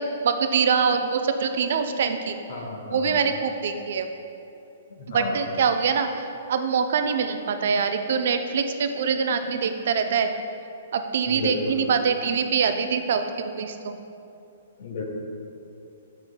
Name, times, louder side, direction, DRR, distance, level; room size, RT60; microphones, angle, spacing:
voice 1, 0.0-2.4 2.9-4.1 5.1-6.1 6.5-10.3 10.9-13.2 13.5-13.9, right 6 dB, 65° right, 8 dB, 0.4 m, -24 dB
voice 2, 2.5-3.2 5.0-5.5 11.3-11.9 14.8-15.0, left 3 dB, 65° left, 0 dB, 1.1 m, -32 dB
7.6 x 5.9 x 2.2 m, 2.7 s
hypercardioid pair, 135°, 0 cm